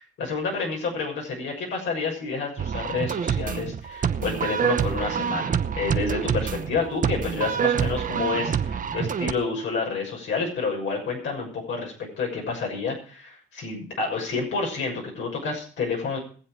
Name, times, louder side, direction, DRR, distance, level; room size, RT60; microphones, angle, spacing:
voice 1, 0.0-16.2, left 4 dB, 75° left, 0 dB, 6.6 m, -29 dB
sound 1, 2.6-9.3, right 8 dB, 40° right, 0.9 m, -26 dB
21.5 x 7.8 x 4.8 m, 0.43 s
cardioid pair, 90°, 20 cm